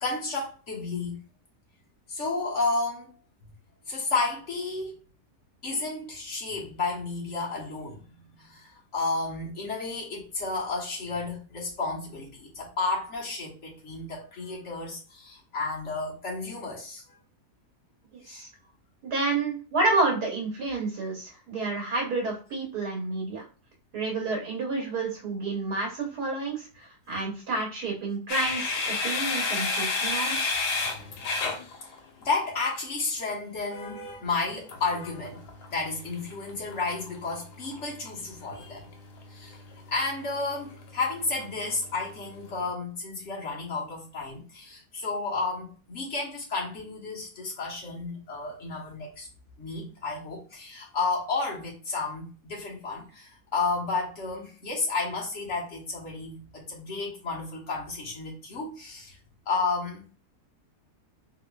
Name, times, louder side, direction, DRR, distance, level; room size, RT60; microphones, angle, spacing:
voice 1, 0.0-1.2 2.1-3.2 3.9-5.0 5.6-17.0 18.2-18.5 32.2-35.4 35.7-38.9 39.3-39.6 39.9-49.3 49.6-59.2 59.5-60.1, left 3 dB, 50° left, 1.4 m, -32 dB
voice 2, 19.0-23.4 23.9-30.5, right 3 dB, 75° right, 1.5 m, -29 dB
sound 1, 28.3-32.4 34.7-42.7, left 3 dB, 85° left, 1.4 m, -33 dB
3.8 x 2.9 x 2.2 m
omnidirectional pair, 1.7 m